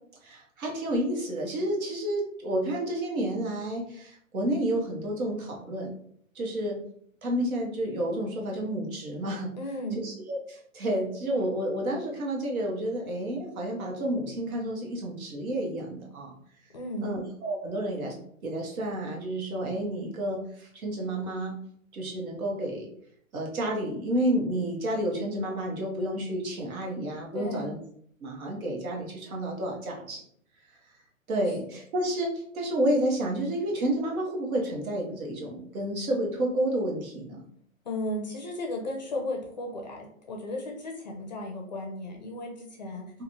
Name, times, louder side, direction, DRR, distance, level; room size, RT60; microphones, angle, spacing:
voice 1, 0.2-6.0 6.3-6.8 7.2-9.5 10.0-16.3 17.0-18.1 18.4-21.5 21.9-22.9 23.3-27.8 28.2-30.2 31.3-37.4, right 1 dB, 90° right, 0 dB, 1.2 m, -30 dB
voice 2, 9.6-10.0 16.7-17.2 27.3-27.7 31.5-31.6 37.8-43.1, left 1 dB, 35° left, 1 dB, 0.4 m, -35 dB
3.0 x 2.4 x 2.6 m, 0.64 s
hypercardioid pair, 165°, 41 cm